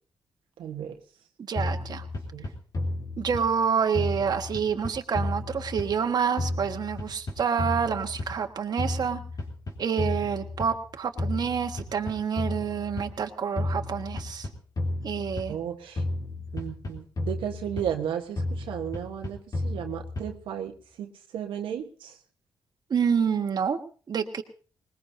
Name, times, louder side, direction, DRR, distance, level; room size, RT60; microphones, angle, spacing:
voice 1, 0.6-1.0 2.3-2.5 15.5-16.0 16.5-22.2, right 9 dB, 90° right, 3 dB, 1.3 m, -34 dB
voice 2, 1.5-2.1 3.2-9.2 9.8-14.5 15.0-15.6 22.9-23.8 24.1-24.4, right 7 dB, 55° right, 5 dB, 1.5 m, -28 dB
sound 1, 1.6-3.6 3.9-6.1 6.4-8.5 8.8-10.9 11.2-13.2 13.6-15.7 16.0-18.1 18.4-20.5, left 2 dB, 45° left, 3.4 m, -32 dB
20.5 x 20.0 x 2.7 m, 0.39 s
cardioid pair, 85°, 8 cm